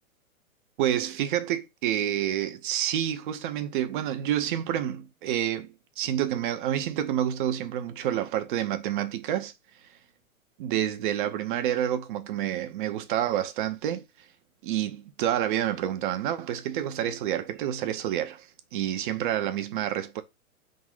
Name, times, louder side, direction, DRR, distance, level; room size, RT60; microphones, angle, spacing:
voice 1, 0.8-9.5 10.6-14.1 14.6-20.2, right 11 dB, 35° right, 0.8 m, -28 dB
4.7 x 3.9 x 5.6 m
figure-of-eight pair, 115°, 43 cm